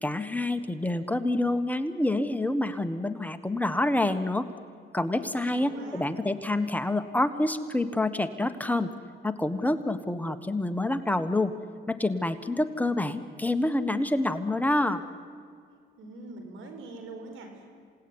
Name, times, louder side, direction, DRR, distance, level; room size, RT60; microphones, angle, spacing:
voice 1, 0.0-4.5 4.9-8.9 9.2-11.5 11.9-15.0, left 2 dB, 10° left, 8 dB, 1.4 m, -27 dB
voice 2, 5.1-6.1 16.0-17.7, right 2 dB, 85° right, 5 dB, 5.0 m, -43 dB
27.5 x 18.0 x 9.9 m, 2.1 s
cardioid pair, 90°, 20 cm